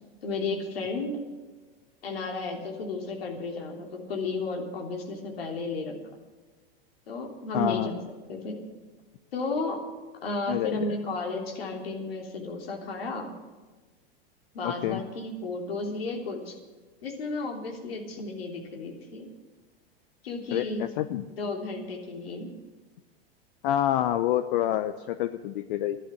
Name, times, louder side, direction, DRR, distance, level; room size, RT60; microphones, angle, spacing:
voice 1, 0.2-1.2 2.0-5.9 7.1-8.6 9.3-9.8 10.2-13.3 14.5-16.6 17.0-19.3 20.2-20.8 21.3-22.5, left 3 dB, 75° left, 2 dB, 3.3 m, -33 dB
voice 2, 7.5-8.1 10.5-11.0 14.6-15.0 20.5-21.3 23.6-26.0, left 12 dB, 60° left, 11 dB, 0.8 m, -28 dB
12.0 x 11.5 x 7.9 m, 1.3 s
hypercardioid pair, 100°, 29 cm